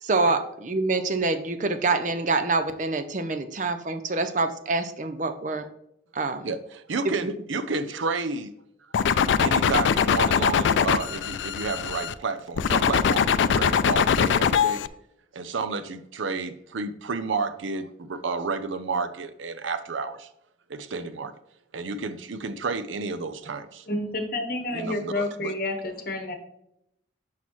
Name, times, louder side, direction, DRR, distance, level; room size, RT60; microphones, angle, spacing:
voice 1, 0.0-5.7 6.1-6.5 7.2-7.3, right 3 dB, 40° right, 0.5 m, -26 dB
voice 2, 6.4-8.5 9.4-14.8 15.3-20.3 20.7-21.3 21.7-23.9 24.7-25.5, right 4 dB, 90° right, 0.6 m, -31 dB
sound 1, 8.9-12.1 12.6-14.9, left 7 dB, 75° left, 0.3 m, -22 dB
voice 3, 23.9-26.3, left 1 dB, 50° left, 1.1 m, -29 dB
6.2 x 5.6 x 3.1 m
head